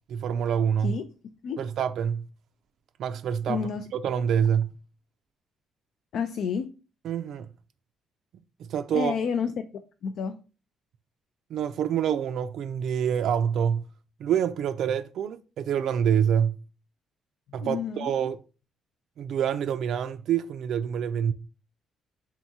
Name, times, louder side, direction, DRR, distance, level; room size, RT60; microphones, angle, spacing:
voice 1, 0.1-1.0 1.6-2.3 3.0-4.7 7.0-7.5 8.6-9.1 11.5-13.9 14.2-16.6 17.5-18.4 19.2-21.3, right 8 dB, 75° right, 0.3 m, -26 dB
voice 2, 3.5-3.8 6.1-6.7 8.9-9.5 10.0-10.4 17.6-18.1, left 6 dB, 70° left, 0.4 m, -29 dB
4.6 x 3.6 x 2.7 m
cardioid pair, 90°, 0 cm